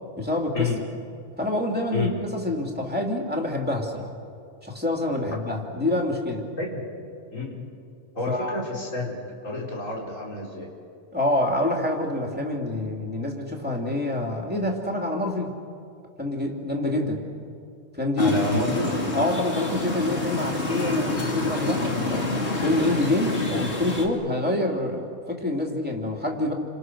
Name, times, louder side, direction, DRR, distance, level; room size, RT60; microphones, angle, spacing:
voice 1, 0.2-0.7 1.4-4.1 4.6-6.5 8.3-8.6 11.1-15.5 16.2-17.2 17.9-18.5 19.1-22.3 22.6-26.5, left 1 dB, 5° right, 0 dB, 3.1 m, -26 dB
voice 2, 1.9-2.3 6.6-6.9 7.3-7.7 8.2-10.7 18.2-18.9, left 2 dB, 85° left, -3 dB, 5.2 m, -29 dB
sound 1, 18.2-24.1, left 2 dB, 55° left, 3.1 m, -28 dB
30.0 x 26.5 x 6.4 m, 2.5 s
omnidirectional pair, 1.3 m